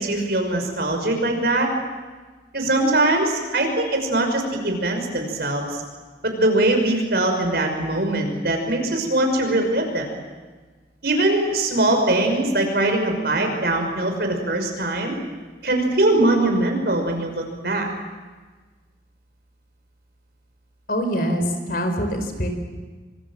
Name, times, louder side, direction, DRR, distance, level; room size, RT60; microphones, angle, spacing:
voice 1, 0.0-1.7 2.5-5.8 6.2-10.2 11.0-15.1 15.6-17.9, right 2 dB, 60° right, 3 dB, 6.0 m, -22 dB
voice 2, 20.9-22.5, equal, 55° left, 6 dB, 4.6 m, -24 dB
26.0 x 25.5 x 7.7 m, 1.4 s
head